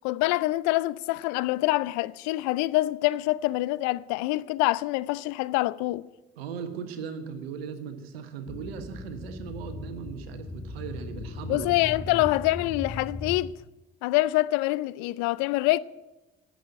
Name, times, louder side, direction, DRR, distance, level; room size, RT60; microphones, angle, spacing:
voice 1, 0.0-6.1 11.5-13.5 14.0-15.8, left 18 dB, 75° left, 0.5 m, -25 dB
voice 2, 6.4-11.7 12.1-12.2, right 6 dB, 90° right, 1.4 m, -38 dB
sound 1, 8.5-13.5, left 3 dB, 25° left, 1.4 m, -38 dB
11.5 x 7.9 x 9.9 m
hypercardioid pair, 55°, 29 cm